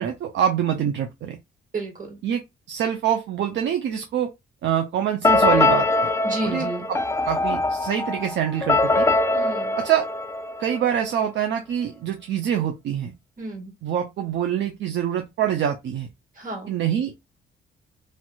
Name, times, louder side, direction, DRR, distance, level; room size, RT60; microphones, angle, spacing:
voice 1, 0.0-1.4 2.2-2.4 2.7-4.3 4.6-5.9 6.4-7.0 7.3-9.1 9.8-10.1 10.6-13.1 13.8-16.1 16.7-17.4, right 9 dB, 65° right, 0.5 m, -25 dB
voice 2, 1.7-2.2 6.2-6.9 9.3-9.8 13.4-13.7 16.4-16.7, right 2 dB, 40° right, 1.9 m, -31 dB
sound 1, 5.2-11.0, left 2 dB, 15° left, 0.4 m, -22 dB
3.1 x 3.0 x 2.3 m
cardioid pair, 90°, 20 cm